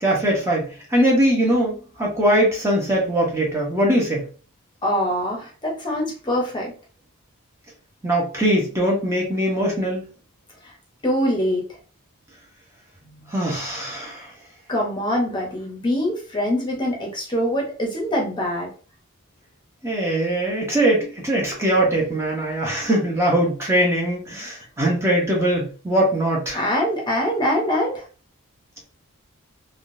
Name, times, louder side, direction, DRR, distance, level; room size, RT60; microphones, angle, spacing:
voice 1, 0.0-4.2 8.0-10.0 13.3-14.3 19.8-26.6, right 1 dB, 10° right, -3 dB, 0.8 m, -21 dB
voice 2, 4.8-6.7 10.6-10.7 11.0-11.8 13.1-13.3 13.9-14.0 14.7-18.7 26.5-28.0, equal, 20° left, -1 dB, 0.8 m, -24 dB
3.6 x 2.3 x 2.6 m, 0.37 s
head